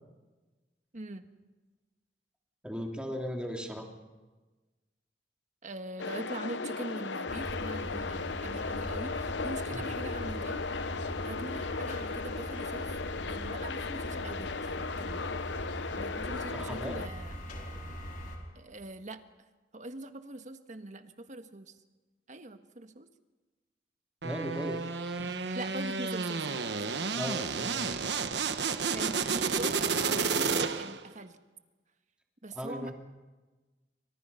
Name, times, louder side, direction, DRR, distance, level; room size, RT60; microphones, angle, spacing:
voice 1, 0.9-1.3 5.6-10.6 11.2-13.0 13.3-15.2 16.0-17.3 18.5-19.5 19.7-21.7 22.3-23.1 25.5-27.0 27.6-27.7 28.9-31.4 32.4-32.9, right 1 dB, 45° right, 8 dB, 1.5 m, -42 dB
voice 2, 2.6-3.9 9.7-9.9 16.5-17.0 24.2-24.8 25.2-25.3 27.1-28.0 32.5-32.9, equal, 5° right, 1 dB, 3.2 m, -37 dB
sound 1, 6.0-17.1, left 4 dB, 80° left, 0.9 m, -36 dB
sound 2, 7.3-18.4, equal, 50° left, 4.6 m, -41 dB
sound 3, 24.2-31.1, right 5 dB, 70° right, 1.2 m, -31 dB
29.0 x 25.5 x 5.7 m, 1.2 s
head